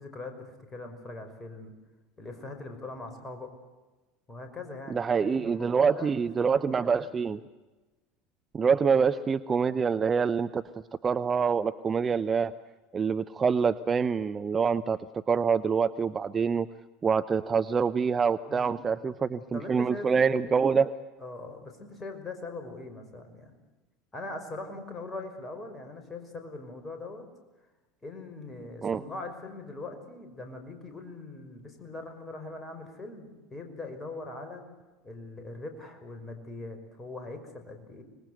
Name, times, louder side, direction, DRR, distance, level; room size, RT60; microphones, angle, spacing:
voice 1, 0.0-1.7 2.2-3.5 4.3-6.3 6.6-7.2 8.6-8.8 18.5-19.2 19.5-20.1 20.4-20.5 21.2-23.6 24.1-27.2 28.0-34.6 35.0-38.0, left 2 dB, 20° left, 5 dB, 5.5 m, -41 dB
voice 2, 4.9-7.4 8.5-10.6 11.0-12.5 12.9-15.0 15.3-16.7 17.0-20.9 28.8-29.0, right 6 dB, 25° right, 12 dB, 0.8 m, -26 dB
25.5 x 20.5 x 8.0 m, 1.2 s
figure-of-eight pair, 70°, 0 cm